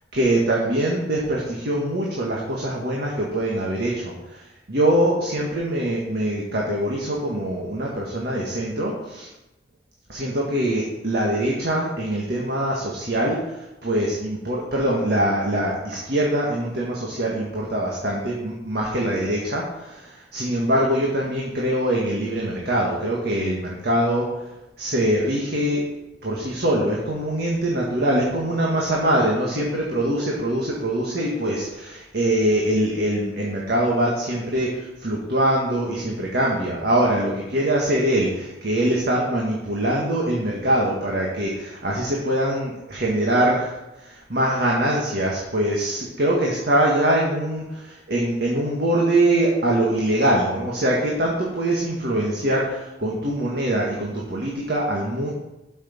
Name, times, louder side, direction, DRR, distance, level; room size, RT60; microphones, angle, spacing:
voice 1, 0.1-4.4 4.7-9.3 10.1-24.4 24.8-25.8 26.2-55.3, right 1 dB, 60° right, -3 dB, 1.7 m, -23 dB
6.6 x 6.5 x 7.3 m, 0.96 s
head